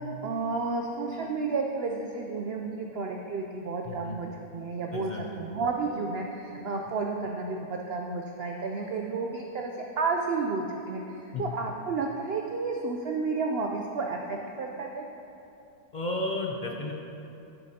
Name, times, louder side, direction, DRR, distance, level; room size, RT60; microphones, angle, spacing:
voice 1, 0.2-15.0, right 4 dB, 70° right, 1 dB, 0.6 m, -31 dB
voice 2, 3.8-4.2 4.9-5.4 11.3-11.6 15.9-16.9, left 2 dB, 65° left, 0 dB, 0.4 m, -33 dB
10.5 x 8.4 x 2.8 m, 2.8 s
omnidirectional pair, 1.6 m